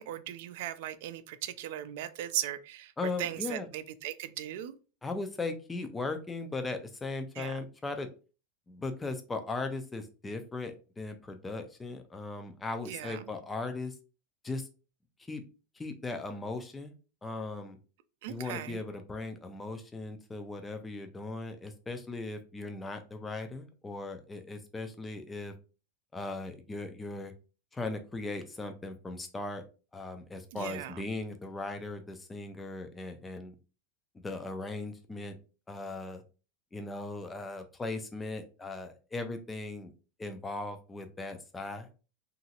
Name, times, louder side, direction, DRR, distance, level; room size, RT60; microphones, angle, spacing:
voice 1, 0.0-4.8 7.4-7.5 12.9-13.3 18.2-18.8 30.5-31.0, right 12 dB, 65° right, 0.4 m, -38 dB
voice 2, 3.0-3.7 5.0-8.1 8.7-13.9 14.4-14.7 15.3-15.4 15.8-16.9 17.2-17.8 18.3-25.5 26.1-27.3 27.7-29.6 29.9-33.5 34.2-35.4 35.7-36.2 36.7-39.9 40.2-41.9, left 3 dB, 10° left, 0.4 m, -38 dB
2.9 x 2.5 x 2.8 m
supercardioid pair, 145°, 0 cm